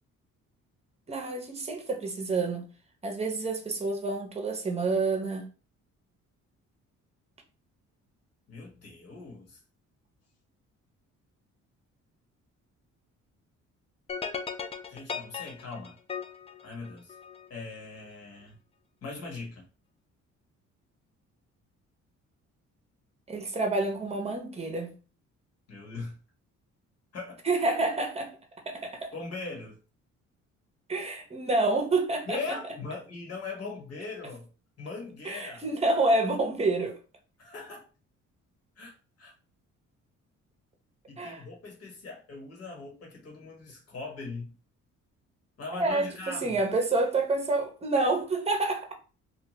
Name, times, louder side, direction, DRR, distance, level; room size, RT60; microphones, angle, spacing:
voice 1, 1.1-2.7 3.0-5.5 23.3-25.0 27.4-28.4 28.7-29.1 30.9-32.6 35.2-37.0 41.2-41.4 45.7-48.9, right 2 dB, 20° right, 0.8 m, -28 dB
voice 2, 8.5-9.6 14.9-16.0 16.6-17.2 17.5-18.6 19.0-19.6 25.7-26.2 27.1-27.4 29.1-29.8 32.2-34.5 34.8-35.6 37.4-37.9 38.8-39.3 41.1-44.5 45.6-46.6, left 3 dB, 50° left, 1.3 m, -40 dB
sound 1, 14.1-17.5, left 6 dB, 20° left, 0.3 m, -37 dB
2.7 x 2.3 x 3.0 m
cardioid pair, 90°, 30 cm